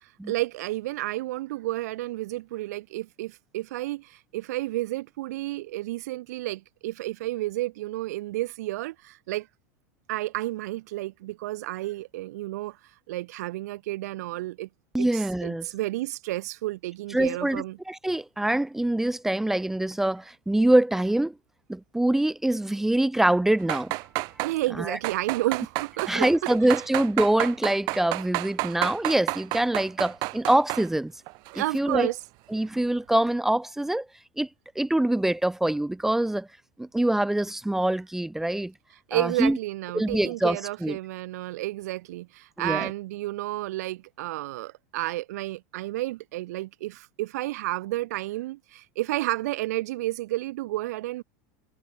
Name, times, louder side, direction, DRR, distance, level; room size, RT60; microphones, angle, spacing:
voice 1, 0.0-9.5 10.1-12.8 13.1-14.7 15.0-17.8 24.4-26.9 31.5-32.2 39.1-51.2, right 17 dB, 80° right, 1.3 m, -31 dB
voice 2, 14.9-15.7 17.1-21.3 21.7-23.9 24.8-25.0 26.1-31.1 31.5-32.1 32.5-34.1 34.4-34.5 34.7-36.5 36.8-38.7 39.1-39.6 39.9-41.0 42.6-42.9, right 1 dB, 5° right, 1.1 m, -24 dB
sound 1, 23.6-24.5 25.0-30.9 31.3-31.6 32.0-32.1, right 26 dB, 50° right, 6.0 m, -30 dB
supercardioid pair, 150°, 9 cm